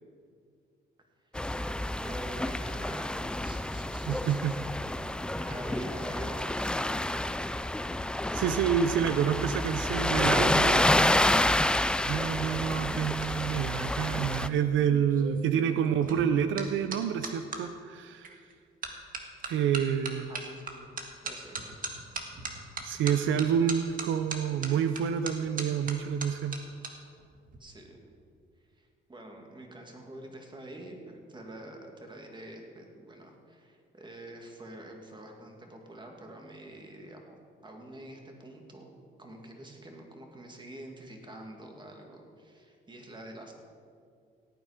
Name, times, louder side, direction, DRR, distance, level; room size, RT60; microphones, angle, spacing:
sound 1, 1.3-14.5, left 1 dB, 5° left, 0.4 m, -29 dB
voice 1, 2.0-4.6 5.1-6.8 20.2-20.9 21.2-21.8 27.6-28.0 28.7-43.5, right 1 dB, 25° right, 2 dB, 2.3 m, -47 dB
voice 2, 4.1-4.6 8.3-11.2 12.0-18.4 19.5-20.3 22.8-26.6, right 8 dB, 80° right, 10 dB, 0.6 m, -28 dB
sound 2, 12.8-17.6 18.2-18.5 18.8-26.9 27.2-27.6, right 4 dB, 45° right, 1.7 m, -40 dB
16.5 x 9.1 x 5.1 m, 2.2 s
cardioid pair, 90°, 20 cm